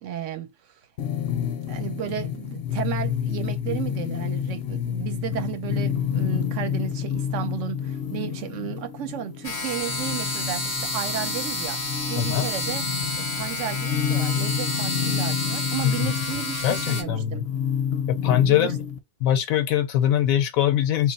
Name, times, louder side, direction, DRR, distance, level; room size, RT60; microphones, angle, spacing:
voice 1, 0.0-0.8 1.5-11.8 12.1-12.8 13.2-17.5 18.4-18.7, right 10 dB, 65° right, 0.9 m, -33 dB
sound 1, 1.0-19.0, left 8 dB, 60° left, 0.7 m, -29 dB
sound 2, 9.4-17.0, left 2 dB, 30° left, 0.4 m, -30 dB
voice 2, 12.2-12.5 15.8-16.1 16.6-17.5 18.1-18.8 19.2-21.1, left 11 dB, 80° left, 1.0 m, -22 dB
3.0 x 2.4 x 4.1 m
omnidirectional pair, 1.5 m